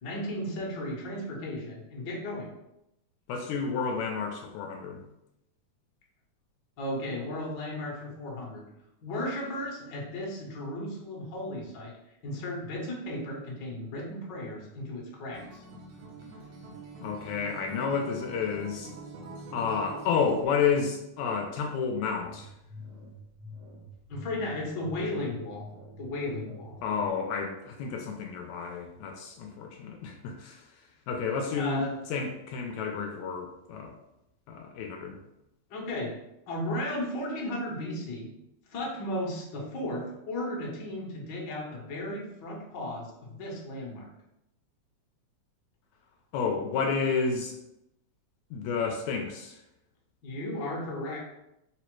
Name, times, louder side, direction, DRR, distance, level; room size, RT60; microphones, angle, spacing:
voice 1, 0.0-2.5 6.8-8.6 9.0-11.9 12.2-15.6 24.1-26.8 31.6-32.0 35.7-36.1 36.5-38.3 38.7-44.0 50.2-51.2, left 1 dB, 60° left, -4 dB, 1.1 m, -35 dB
voice 2, 3.3-5.0 17.0-18.9 19.5-22.5 26.8-30.6 31.1-31.8 32.1-33.9 34.5-35.2 46.3-47.6 48.5-49.6, left 5 dB, 80° left, 2 dB, 1.8 m, -30 dB
Acoustic guitar, 15.3-20.5, right 3 dB, 85° right, 2.1 m, -44 dB
sound 1, 22.1-27.1, left 2 dB, 60° right, 1.1 m, -47 dB
4.7 x 2.0 x 4.4 m, 0.85 s
omnidirectional pair, 3.4 m